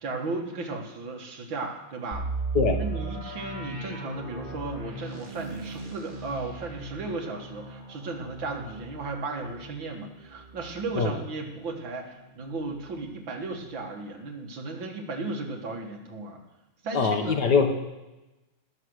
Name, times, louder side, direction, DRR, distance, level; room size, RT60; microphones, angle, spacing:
voice 1, 0.0-2.3 2.8-16.4 16.8-17.4, right 3 dB, 65° right, 2 dB, 2.3 m, -35 dB
sound 1, 2.1-11.8 12.2-12.3 12.8-13.0, right 4 dB, 25° right, 1.9 m, -37 dB
voice 2, 16.9-17.7, left 5 dB, 60° left, 5 dB, 1.6 m, -22 dB
18.5 x 6.6 x 6.4 m, 1.0 s
omnidirectional pair, 2.3 m